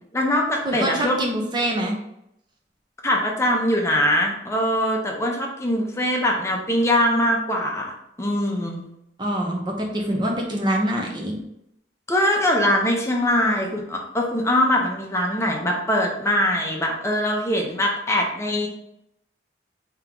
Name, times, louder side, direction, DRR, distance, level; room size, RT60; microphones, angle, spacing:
voice 1, 0.1-1.1 3.0-7.9 8.2-8.8 12.1-18.7, left 1 dB, 15° left, 0 dB, 0.6 m, -22 dB
voice 2, 0.6-1.9 9.2-11.4, right 1 dB, 25° right, 0 dB, 0.7 m, -25 dB
3.6 x 2.9 x 3.6 m, 0.79 s
head